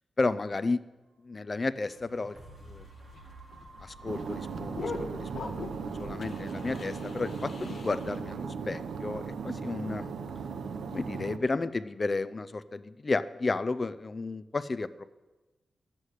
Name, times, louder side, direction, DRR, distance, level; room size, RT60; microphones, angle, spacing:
voice 1, 0.2-0.8 1.2-2.4 2.6-2.9 3.8-5.7 6.0-10.1 10.9-15.1, left 3 dB, 25° left, 15 dB, 0.4 m, -32 dB
sound 1, 1.6-9.6 10.2-10.3, right 2 dB, 35° right, 1.6 m, -52 dB
sound 2, 2.6-8.2, left 4 dB, 50° left, 1.0 m, -43 dB
sound 3, 4.1-11.4, right 5 dB, 85° right, 0.7 m, -37 dB
11.5 x 8.3 x 6.4 m, 1.1 s
wide cardioid pair, 170°, 0 cm